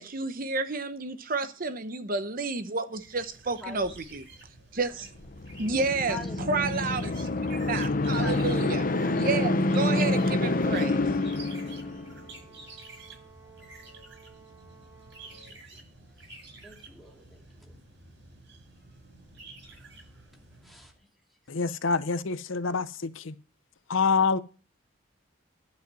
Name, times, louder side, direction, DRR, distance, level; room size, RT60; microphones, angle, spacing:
voice 1, 0.0-4.2 4.7-5.1 5.6-6.2 6.5-8.8 9.2-11.0, right 3 dB, 45° right, 0.9 m, -30 dB
sound 1, 2.9-21.0, right 3 dB, 60° right, 6.4 m, -50 dB
voice 2, 3.6-3.9 6.1-6.9 8.1-8.5 10.7-11.3 12.1-12.7 13.1-13.2 15.2-15.8 16.6-17.8 19.6-20.0 20.6-21.1, left 2 dB, ahead, 2.5 m, -46 dB
sound 2, 5.3-12.2, left 2 dB, 45° left, 0.7 m, -27 dB
Brass instrument, 9.2-15.6, right 5 dB, 20° right, 3.5 m, -55 dB
voice 3, 21.5-23.3 23.9-24.4, left 5 dB, 80° left, 0.7 m, -26 dB
12.0 x 5.3 x 7.6 m
head